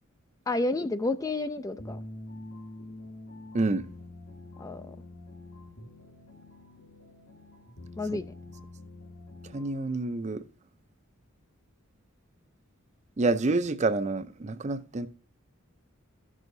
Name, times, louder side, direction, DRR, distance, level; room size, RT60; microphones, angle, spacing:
voice 1, 0.5-2.0 4.6-5.0 8.0-8.3, left 2 dB, 15° left, 0.3 m, -30 dB
sound 1, 1.8-9.9, left 1 dB, 80° left, 1.6 m, -46 dB
voice 2, 3.5-3.9 8.1-8.2 9.5-10.4 13.2-15.1, right 3 dB, 35° right, 0.5 m, -28 dB
14.5 x 6.2 x 2.7 m
head